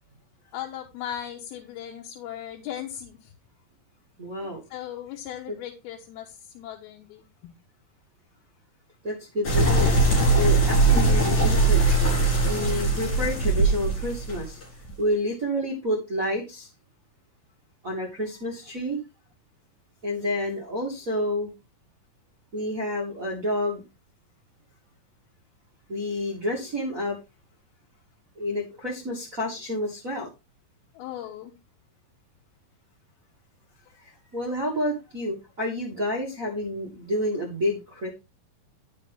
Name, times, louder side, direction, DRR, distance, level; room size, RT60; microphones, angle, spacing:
voice 1, 0.5-3.3 4.4-7.5 30.9-31.5, left 10 dB, 85° left, 0 dB, 2.9 m, -38 dB
voice 2, 4.2-4.6 9.0-9.9 10.3-11.8 12.4-14.6 15.0-16.7 17.8-19.0 20.0-21.5 22.5-23.8 25.9-27.2 28.4-30.3 34.3-38.1, left 1 dB, 45° right, -2 dB, 1.0 m, -29 dB
sound 1, 9.4-14.9, right 2 dB, 50° left, 5.2 m, -21 dB
10.5 x 6.4 x 3.6 m, 0.26 s
omnidirectional pair, 4.4 m